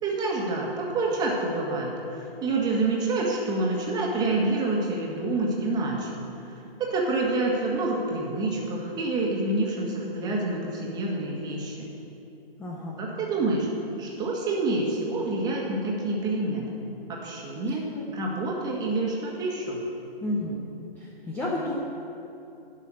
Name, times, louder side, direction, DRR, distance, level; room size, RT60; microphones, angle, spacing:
voice 1, 0.0-6.2 6.8-11.9 13.0-13.7 14.0-16.7 17.2-17.9 18.1-19.8, right 2 dB, 15° right, -2 dB, 1.6 m, -27 dB
voice 2, 12.6-13.0 17.7-18.1 20.2-20.6 21.0-21.7, left 1 dB, 5° left, -3 dB, 0.6 m, -32 dB
12.0 x 5.7 x 8.7 m, 2.8 s
hypercardioid pair, 140°, 29 cm